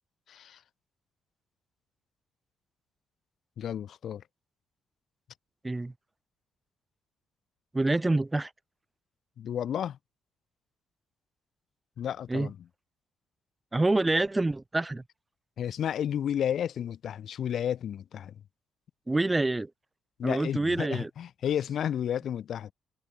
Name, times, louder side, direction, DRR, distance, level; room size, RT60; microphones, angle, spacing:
voice 1, 0.3-0.6 3.6-4.2 9.4-10.0 12.0-12.6 15.6-18.3 20.2-22.7, left 9 dB, 65° left, 7.2 m, -32 dB
voice 2, 7.7-8.5 12.3-12.5 13.7-15.0 19.1-19.7 20.2-21.1, right 2 dB, 15° right, 3.7 m, -26 dB
cardioid pair, 90°, 0 cm